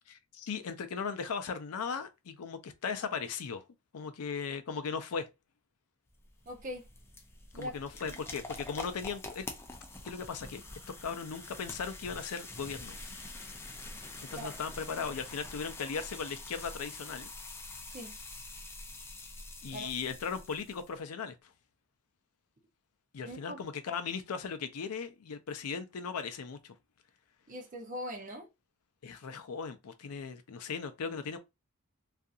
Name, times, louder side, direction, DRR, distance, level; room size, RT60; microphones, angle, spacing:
voice 1, 0.1-3.6 3.9-5.3 7.5-9.5 10.0-10.6 11.0-13.0 14.3-17.3 19.6-21.4 23.1-26.7 29.0-31.4, left 5 dB, 85° left, 0.5 m, -37 dB
sound 1, 6.1-20.9, left 2 dB, 10° left, 0.3 m, -46 dB
voice 2, 6.5-6.8 7.5-7.8 8.1-8.2 14.3-14.5 17.9-18.2 19.7-19.9 23.2-23.6 27.5-28.5, equal, 35° right, 0.6 m, -41 dB
2.7 x 2.4 x 2.4 m
head